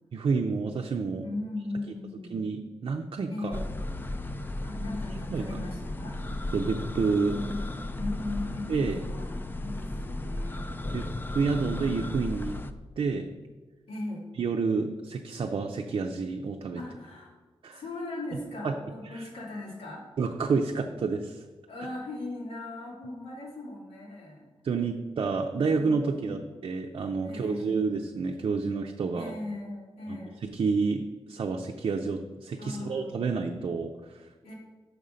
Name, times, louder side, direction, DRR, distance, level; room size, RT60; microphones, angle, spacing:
voice 1, 0.1-1.2 1.9-2.0 2.3-3.6 5.3-5.5 6.5-7.4 8.7-9.0 10.9-11.1 11.3-12.6 13.0-13.3 14.3-16.8 17.6-17.8 18.6-18.7 19.1-19.3 20.2-21.4 24.6-29.3 30.1-34.5, right 4 dB, 55° right, 3 dB, 0.5 m, -29 dB
voice 2, 1.2-2.4 3.3-3.7 4.6-6.5 7.1-7.6 8.0-9.3 9.6-10.7 13.9-14.3 16.8-17.3 17.7-20.0 21.7-24.4 25.7-26.6 27.2-27.8 29.1-30.4 32.6-33.3 34.4-34.5, left 2 dB, 85° left, -3 dB, 2.4 m, -38 dB
sound 1, 3.5-12.7, left 1 dB, 20° left, 0.4 m, -35 dB
6.4 x 5.5 x 5.0 m, 1.3 s
wide cardioid pair, 140°, 10 cm